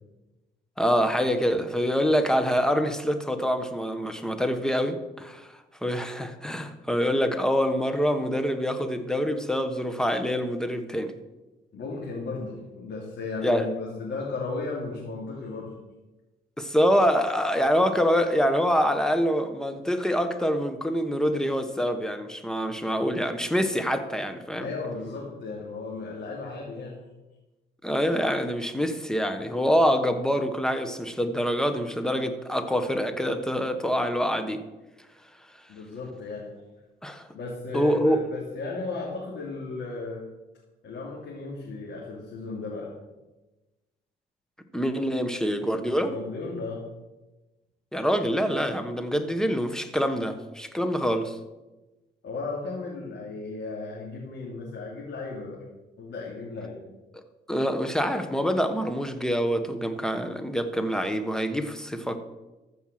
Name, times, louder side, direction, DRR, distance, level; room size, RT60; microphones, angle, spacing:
voice 1, 0.8-5.5 5.8-11.1 13.4-13.7 16.6-24.7 27.8-34.6 37.0-37.3 37.7-38.2 44.7-46.1 47.9-51.4 57.1-57.2 57.5-62.2, equal, 5° left, 8 dB, 1.3 m, -25 dB
voice 2, 11.7-15.7 24.6-27.0 35.7-36.5 37.3-40.2 40.8-42.9 46.1-46.8 52.2-55.6 56.0-56.8, left 3 dB, 65° left, -4 dB, 3.0 m, -35 dB
14.0 x 5.5 x 7.7 m, 1.1 s
cardioid pair, 90°, 20 cm